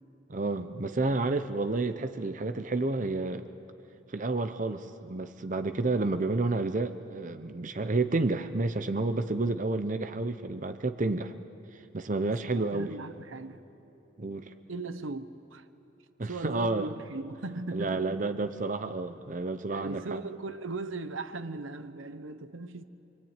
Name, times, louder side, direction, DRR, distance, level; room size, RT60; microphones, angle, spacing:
voice 1, 0.3-3.5 4.1-11.3 11.9-12.9 14.2-14.5 16.2-16.9 17.7-20.0, right 3 dB, 40° right, 0.8 m, -30 dB
voice 2, 12.4-13.6 14.7-15.7 16.2-18.2 19.6-22.8, right 3 dB, 85° right, 1.0 m, -38 dB
25.0 x 24.5 x 9.0 m
head